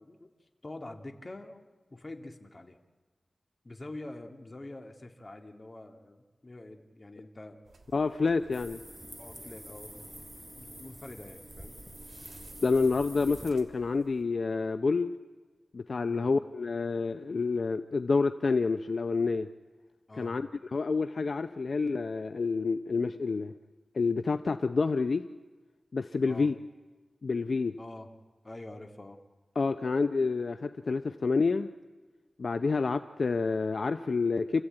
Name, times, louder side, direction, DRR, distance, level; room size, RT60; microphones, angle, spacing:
voice 1, 0.0-2.8 3.6-7.6 9.2-10.1 10.6-11.8 16.0-16.3 20.1-20.4 26.2-26.5 27.8-28.1 28.4-29.2, left 2 dB, 35° left, 4 dB, 2.2 m, -46 dB
sound 1, 7.6-14.2, right 3 dB, 70° right, 3.0 m, -55 dB
voice 2, 7.9-8.8 12.6-15.1 15.7-19.5 20.2-23.5 23.9-25.3 25.9-26.5 27.2-27.8 29.6-31.7 32.4-34.6, left 4 dB, 65° left, 9 dB, 0.6 m, -28 dB
sound 2, 8.5-13.5, equal, 5° right, 0.9 m, -47 dB
28.5 x 14.5 x 8.9 m, 1.4 s
wide cardioid pair, 75°, 0 cm